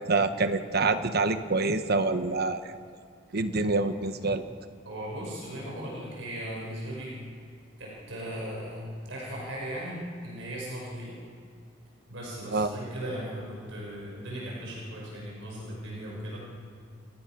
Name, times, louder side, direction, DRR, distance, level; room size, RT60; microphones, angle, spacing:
voice 1, 0.0-2.8 3.3-4.4 12.5-12.7, right 3 dB, 55° right, 9 dB, 1.1 m, -26 dB
voice 2, 4.8-7.1 7.8-11.2 12.1-16.4, right 1 dB, 75° right, -3 dB, 5.7 m, -37 dB
29.5 x 15.5 x 6.1 m, 2.3 s
head